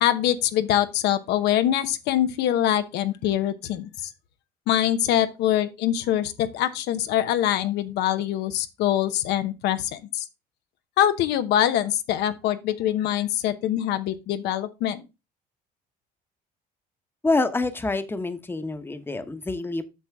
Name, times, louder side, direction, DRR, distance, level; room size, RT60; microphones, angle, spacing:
voice 1, 0.0-4.1 4.7-10.2 11.0-15.0, left 11 dB, 85° left, 0.8 m, -24 dB
voice 2, 17.2-19.8, left 3 dB, 15° left, 1.0 m, -26 dB
8.4 x 6.1 x 3.4 m
cardioid pair, 110°, 17 cm